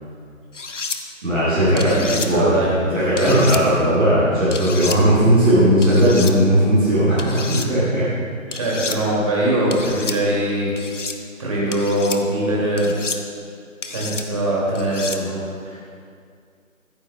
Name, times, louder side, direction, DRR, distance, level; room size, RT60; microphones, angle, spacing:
sound 1, 0.5-1.0 1.8-2.3 3.2-3.6 4.5-5.0 5.8-6.3 7.2-7.7 8.5-9.0 9.7-10.2 10.8-11.2 11.7-12.2 12.8-13.2 13.8-14.2 14.7-15.2, left 4 dB, 60° left, 0.9 m, -30 dB
voice 1, 1.2-1.9 2.3-2.5 2.9-8.0, equal, 5° right, -21 dB, 1.0 m, -17 dB
voice 2, 1.7-2.7 3.2-3.3 8.5-10.7 11.4-12.9 13.8-15.8, right 1 dB, 25° right, -5 dB, 2.5 m, -22 dB
14.5 x 14.0 x 2.3 m, 2.3 s
figure-of-eight pair, 160°, 41 cm